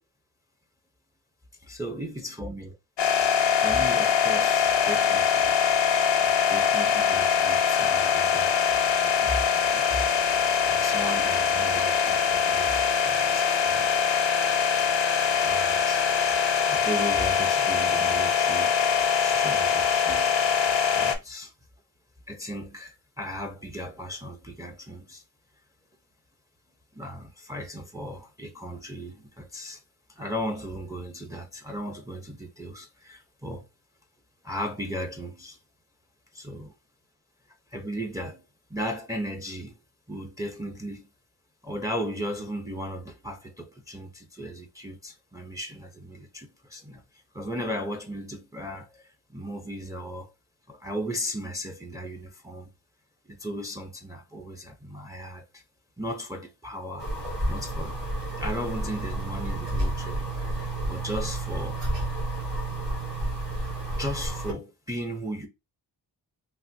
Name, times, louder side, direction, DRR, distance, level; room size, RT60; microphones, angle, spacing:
voice 1, 1.6-2.7 3.6-5.6 6.2-8.6 8.8-10.0 10.3-13.9 15.4-16.1 16.6-20.4 20.9-21.5 22.3-25.2 26.9-29.8 30.1-33.7 34.4-35.6 36.3-36.7 37.7-39.8 40.1-41.1 41.6-50.3 50.7-52.7 53.3-55.6 56.0-57.1 57.5-58.0 58.4-61.8 64.0-65.5, equal, 10° right, 0.5 m, -36 dB
sound 1, 3.0-21.2, left 7 dB, 90° left, 0.7 m, -23 dB
sound 2, 57.0-64.5, right 2 dB, 70° right, 2.0 m, -30 dB
3.3 x 2.5 x 2.6 m
cardioid pair, 80°, 42 cm